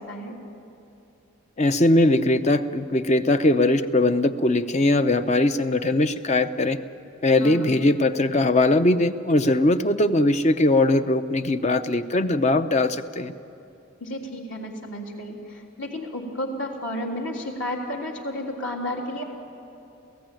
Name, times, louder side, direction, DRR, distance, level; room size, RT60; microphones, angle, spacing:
voice 1, 1.6-6.8 7.2-13.3, left 2 dB, 30° left, 10 dB, 0.7 m, -20 dB
voice 2, 14.0-19.2, left 1 dB, 60° left, -1 dB, 3.4 m, -32 dB
28.0 x 16.5 x 9.1 m, 2.8 s
head